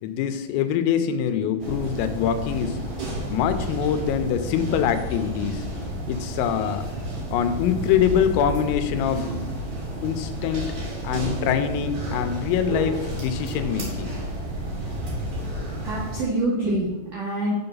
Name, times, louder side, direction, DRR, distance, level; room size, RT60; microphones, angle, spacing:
voice 1, 0.0-2.8 3.3-5.7 6.1-6.8 7.3-9.3 10.0-10.6 11.0-14.1, left 8 dB, 85° left, 8 dB, 3.3 m, -24 dB
sound 1, 1.6-16.2, right 1 dB, 45° right, 3.4 m, -31 dB
voice 2, 15.7-17.5, right 1 dB, 75° right, -6 dB, 1.9 m, -26 dB
7.2 x 6.9 x 5.5 m, 1.1 s
omnidirectional pair, 5.9 m